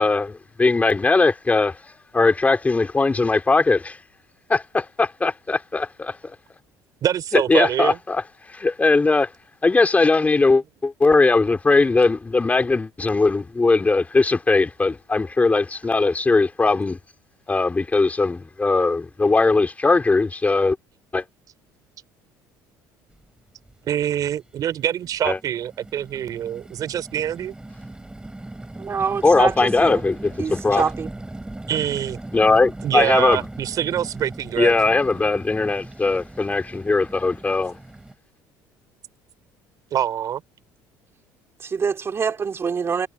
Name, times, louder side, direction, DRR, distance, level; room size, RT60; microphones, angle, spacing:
voice 1, 0.0-1.8 2.1-4.0 4.5-6.2 7.3-8.2 8.5-9.3 9.6-17.0 17.5-20.8 21.1-21.2 25.2-25.4 29.2-30.8 32.3-33.4 34.6-37.7, left 3 dB, 20° left, 4.0 m, -19 dB
voice 2, 7.0-8.0 23.8-27.5 31.7-32.2 32.8-34.8 39.9-40.4, right 10 dB, 55° right, 3.3 m, -25 dB
sound 1, 23.1-23.2 23.7-24.3 25.0-38.1, right 2 dB, 10° right, 7.7 m, -38 dB
voice 3, 28.8-30.0 30.4-31.1 41.6-43.1, right 6 dB, 35° right, 3.6 m, -25 dB
supercardioid pair, 90°, 7 cm